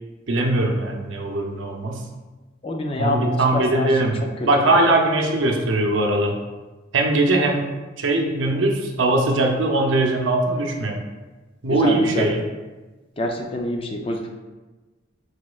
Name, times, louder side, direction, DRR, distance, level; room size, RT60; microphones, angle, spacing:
voice 1, 0.3-2.0 3.0-6.4 6.9-7.7 8.0-11.0 11.6-12.4, right 2 dB, 80° right, 2 dB, 0.6 m, -20 dB
voice 2, 2.6-3.9 11.7-12.3 13.2-14.3, left 1 dB, 30° left, 2 dB, 0.4 m, -26 dB
4.9 x 4.2 x 2.4 m, 1.2 s
head